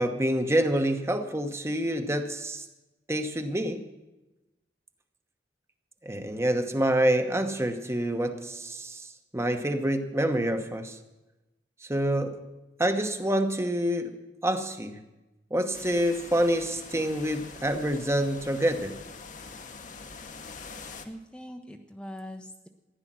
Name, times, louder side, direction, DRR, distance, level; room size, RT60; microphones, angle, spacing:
voice 1, 0.0-2.6 3.1-3.8 6.0-9.1 9.3-11.0 11.8-12.4 12.8-14.1 14.4-15.0 15.5-19.0, right 1 dB, 15° right, 7 dB, 1.1 m, -27 dB
sound 1, 15.7-21.1, left 4 dB, 45° left, 1.1 m, -44 dB
voice 2, 21.0-22.7, equal, 5° left, 3 dB, 0.8 m, -42 dB
15.0 x 10.5 x 7.5 m, 1.0 s
head